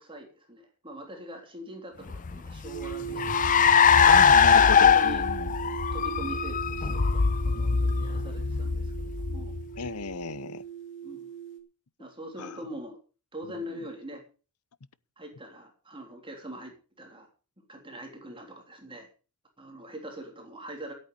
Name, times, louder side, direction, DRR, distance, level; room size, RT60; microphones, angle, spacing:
voice 1, 0.0-5.2 5.9-9.5 11.0-11.3 12.0-13.0 13.3-14.2 15.2-17.3 17.6-19.1 19.6-20.9, right 1 dB, 25° right, 3.4 m, -43 dB
Car, 2.1-9.9, left 6 dB, 35° left, 0.5 m, -22 dB
sound 1, 2.6-11.6, right 9 dB, 55° left, 2.5 m, -39 dB
voice 2, 4.1-5.8 9.8-10.6 12.4-12.6 13.5-13.6, left 5 dB, 85° left, 0.7 m, -34 dB
13.5 x 8.7 x 6.7 m
head